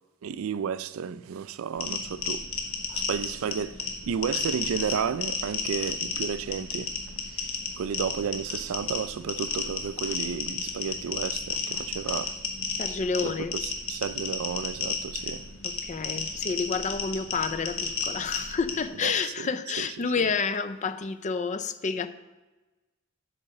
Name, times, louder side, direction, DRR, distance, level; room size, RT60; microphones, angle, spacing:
voice 1, 0.2-2.5 2.9-6.9 7.3-7.5 7.8-12.4 13.2-15.5 16.2-16.3 19.0-19.5 19.8-19.9, right 7 dB, 85° right, 0.4 m, -32 dB
sound 1, 1.8-18.8, left 5 dB, 75° left, 1.7 m, -33 dB
voice 2, 12.8-13.5 15.6-22.1, left 5 dB, 35° left, 0.5 m, -29 dB
8.7 x 4.9 x 6.5 m
head